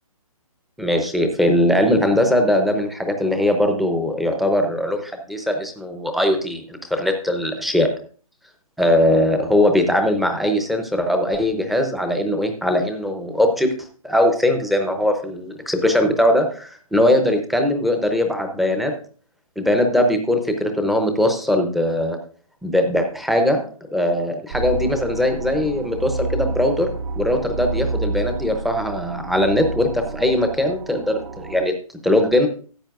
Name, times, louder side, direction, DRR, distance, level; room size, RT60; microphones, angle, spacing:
voice 1, 0.8-7.9 8.8-13.7 14.0-18.9 19.6-22.2 22.6-23.7 23.9-26.9 27.2-31.7 32.0-32.5, left 1 dB, ahead, 5 dB, 0.6 m, -20 dB
sound 1, 24.5-31.6, right 3 dB, 75° right, 1.5 m, -29 dB
14.0 x 8.5 x 2.4 m, 0.42 s
hypercardioid pair, 150°, 19 cm